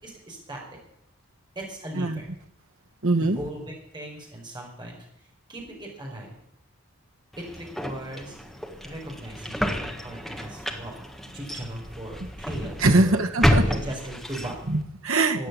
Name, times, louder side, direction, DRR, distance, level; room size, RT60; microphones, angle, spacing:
voice 1, 0.0-0.8 1.5-2.3 3.2-6.4 7.4-8.4 8.8-10.9 11.3-13.2 13.7-14.5 15.3-15.5, right 1 dB, 20° right, -1 dB, 5.0 m, -38 dB
voice 2, 3.0-3.4 12.8-13.6 14.7-15.5, right 2 dB, 70° right, 5 dB, 1.6 m, -22 dB
sound 1, 7.3-14.8, equal, ahead, 1.6 m, -29 dB
15.5 x 9.1 x 9.8 m, 0.74 s
head